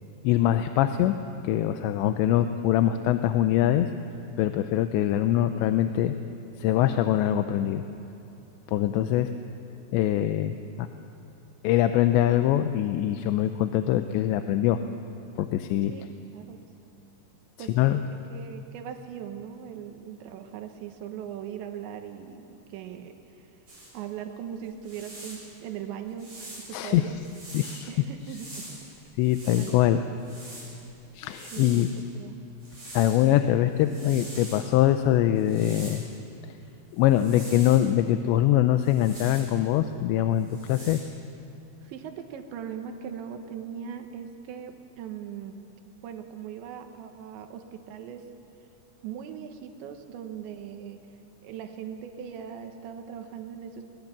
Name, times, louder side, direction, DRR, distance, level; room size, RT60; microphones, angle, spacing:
voice 1, 0.2-1.2 1.4-3.9 4.4-6.2 6.6-7.8 8.7-9.3 9.9-10.9 11.6-14.8 15.4-15.9 17.7-18.0 26.7-27.1 27.5-27.9 29.2-30.0 31.2-31.9 32.9-36.0 36.9-41.0, left 12 dB, 90° left, 8 dB, 3.0 m, -23 dB
voice 2, 17.6-18.0 18.3-23.5 23.9-27.2 27.5-28.8 29.5-30.0 31.5-31.9 32.1-32.4 41.8-45.6 46.0-48.2 49.0-51.0 51.4-53.9, right 8 dB, 90° right, 5 dB, 3.5 m, -40 dB
sound 1, 23.7-23.9 24.7-25.5 26.2-27.8 28.2-29.8 30.2-32.0 32.6-33.3 33.7-34.7 35.3-36.2 37.0-37.9 38.8-39.6 40.3-41.0, right 1 dB, 30° right, 8.6 m, -44 dB
24.5 x 20.5 x 7.4 m, 3.0 s
omnidirectional pair, 5.0 m